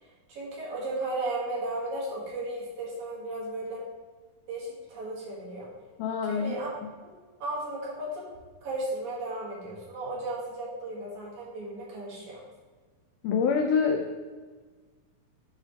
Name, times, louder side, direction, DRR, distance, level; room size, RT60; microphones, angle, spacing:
voice 1, 0.3-3.8 4.5-5.7 6.2-6.7 7.0-7.1 7.4-8.3 8.6-12.4, right 2 dB, 60° right, -5 dB, 2.7 m, -35 dB
voice 2, 6.0-6.5 13.2-14.3, left 5 dB, 90° left, 3 dB, 1.8 m, -26 dB
9.9 x 5.0 x 3.3 m, 1.4 s
omnidirectional pair, 4.3 m